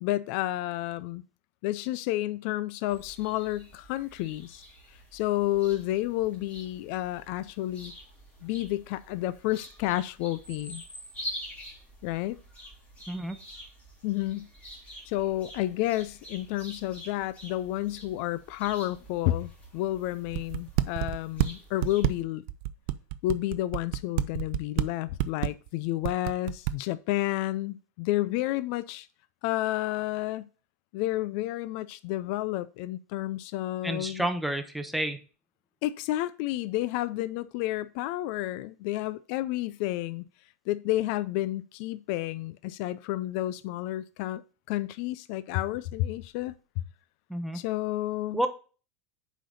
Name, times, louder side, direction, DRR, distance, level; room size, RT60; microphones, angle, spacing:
voice 1, 0.0-1.2 1.6-4.6 5.1-7.9 8.4-10.8 12.0-12.4 14.0-14.5 15.0-22.4 23.2-29.1 29.4-30.5 30.9-34.3 35.8-40.2 40.7-44.4 44.7-46.5 47.5-48.4, left 15 dB, 55° left, 0.4 m, -30 dB
sound 1, 2.9-22.2, equal, 15° left, 3.4 m, -47 dB
sound 2, 20.3-21.5 21.8-24.9 25.2-25.7 26.0-26.7, right 16 dB, 55° right, 0.6 m, -27 dB
voice 2, 33.8-35.2 47.3-47.6 48.3-48.5, right 1 dB, ahead, 0.9 m, -30 dB
7.7 x 5.1 x 4.1 m
supercardioid pair, 140°, 8 cm